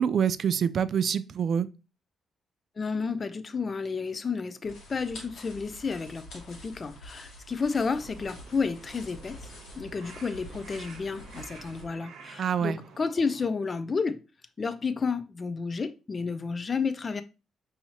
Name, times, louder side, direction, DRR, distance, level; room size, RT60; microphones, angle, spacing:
voice 1, 0.0-1.7 12.4-12.8, right 8 dB, 55° right, 0.3 m, -26 dB
voice 2, 2.8-9.4 9.8-14.2 14.6-17.2, left 5 dB, 35° left, 0.4 m, -31 dB
sound 1, 4.6-11.8, left 1 dB, 75° left, 1.3 m, -47 dB
Crow, 7.9-13.4, right 5 dB, 80° right, 0.9 m, -50 dB
5.5 x 2.7 x 2.8 m
cardioid pair, 90°, 0 cm